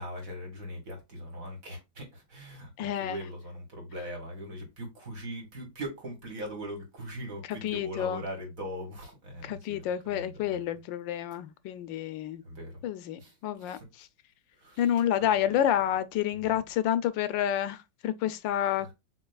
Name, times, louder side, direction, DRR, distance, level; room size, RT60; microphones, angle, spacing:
voice 1, 0.0-10.6 12.4-12.8 13.2-13.3 13.6-13.8 14.6-14.8 15.2-15.5 16.4-16.6, equal, 45° right, 2.3 m, -40 dB
voice 2, 2.8-3.2 7.5-8.2 9.4-12.4 12.8-14.1 14.8-18.9, left 11 dB, 85° left, 1.3 m, -29 dB
6.8 x 3.0 x 2.4 m
omnidirectional pair, 2.0 m